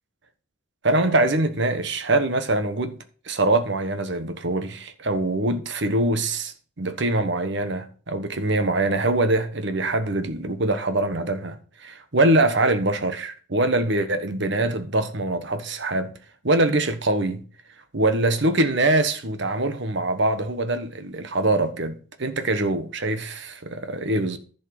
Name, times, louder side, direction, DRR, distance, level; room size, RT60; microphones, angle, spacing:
voice 1, 0.8-3.0 3.2-16.2 16.4-17.4 17.9-24.4, right 2 dB, 60° right, 1.2 m, -23 dB
10.5 x 5.5 x 6.5 m
head